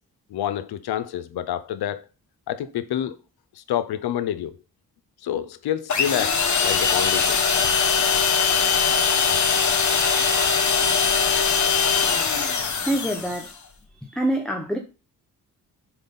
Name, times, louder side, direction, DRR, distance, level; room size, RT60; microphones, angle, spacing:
voice 1, 0.3-2.0 2.5-3.2 3.6-4.6 5.2-7.4, left 10 dB, 85° left, 0.7 m, -28 dB
sound 1, 5.9-13.5, left 6 dB, 50° left, 1.3 m, -21 dB
voice 2, 12.7-13.6 14.1-14.8, right 1 dB, ahead, 1.0 m, -26 dB
7.1 x 4.0 x 5.5 m
cardioid pair, 90°, 37 cm